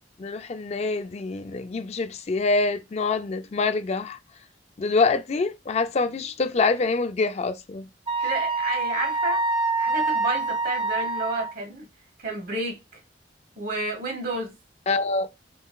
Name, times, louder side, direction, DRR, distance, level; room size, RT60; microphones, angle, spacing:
voice 1, 0.2-4.2 4.8-7.9 14.9-15.3, left 3 dB, 35° left, 0.4 m, -25 dB
Wind instrument woodwind instrument, 8.1-11.5, right 3 dB, 30° right, 0.6 m, -26 dB
voice 2, 8.2-9.4 9.8-11.9 12.2-12.8 13.6-14.5, right 2 dB, 55° right, 1.4 m, -30 dB
3.8 x 3.4 x 2.3 m
head